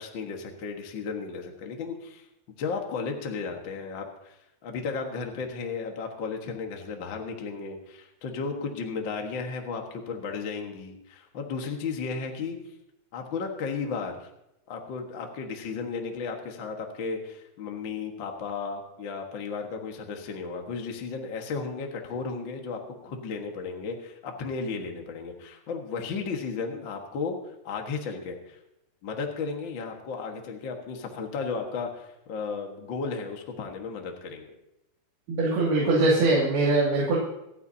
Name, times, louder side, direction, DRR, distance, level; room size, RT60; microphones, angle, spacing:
voice 1, 0.0-2.2 2.6-12.6 13.1-14.3 14.7-28.6 29.0-34.5, left 5 dB, 55° left, 2 dB, 1.4 m, -34 dB
voice 2, 35.3-37.2, right 2 dB, 80° right, -5 dB, 4.3 m, -22 dB
27.0 x 9.3 x 2.8 m, 0.85 s
omnidirectional pair, 4.4 m